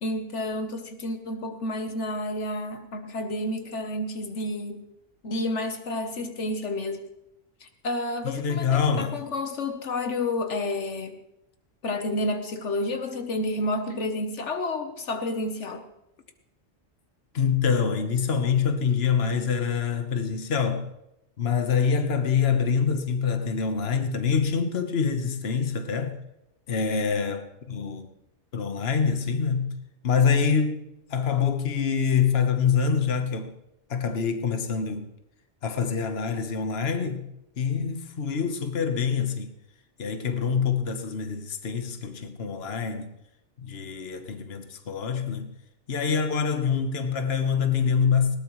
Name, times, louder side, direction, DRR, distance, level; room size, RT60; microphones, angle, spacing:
voice 1, 0.0-4.8 5.2-7.0 7.6-11.2 11.8-15.9, left 1 dB, 75° left, 1.4 m, -30 dB
voice 2, 8.2-9.1 17.3-20.9 21.4-26.1 26.7-28.1 28.5-29.7 30.0-33.5 33.9-35.1 35.6-37.3 37.6-39.5 40.0-43.1 43.6-45.5 45.9-48.4, left 6 dB, 60° left, 1.4 m, -25 dB
20.0 x 18.0 x 3.1 m
omnidirectional pair, 1.2 m